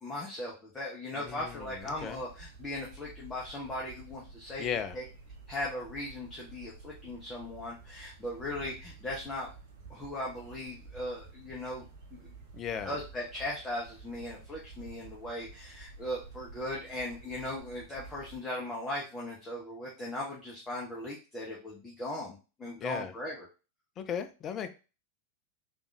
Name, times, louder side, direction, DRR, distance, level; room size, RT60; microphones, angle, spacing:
voice 1, 0.0-5.1 5.5-9.5 9.9-11.8 12.1-12.3 12.8-23.5, left 1 dB, 15° left, -4 dB, 0.9 m, -38 dB
voice 2, 1.2-1.7 2.0-2.2 4.6-5.0 12.5-12.9 22.8-23.1 24.0-24.7, left 8 dB, 30° left, 8 dB, 0.4 m, -36 dB
sound 1, 1.2-18.4, right 4 dB, 50° right, 0.8 m, -51 dB
3.5 x 2.5 x 3.2 m, 0.33 s
figure-of-eight pair, 90°, 0 cm